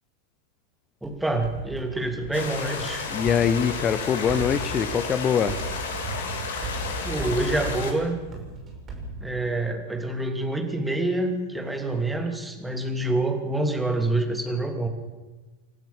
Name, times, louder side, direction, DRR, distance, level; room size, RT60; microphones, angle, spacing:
voice 1, 1.0-3.1 6.6-8.2 9.2-14.9, right 2 dB, 5° right, 4 dB, 2.8 m, -27 dB
sound 1, 1.0-9.8, right 2 dB, 25° right, 5.7 m, -37 dB
sound 2, 2.3-7.9, left 5 dB, 60° left, 2.9 m, -32 dB
voice 2, 3.1-5.6, left 7 dB, 25° left, 15 dB, 1.1 m, -23 dB
28.5 x 12.0 x 7.5 m, 1.2 s
figure-of-eight pair, 90°, 0 cm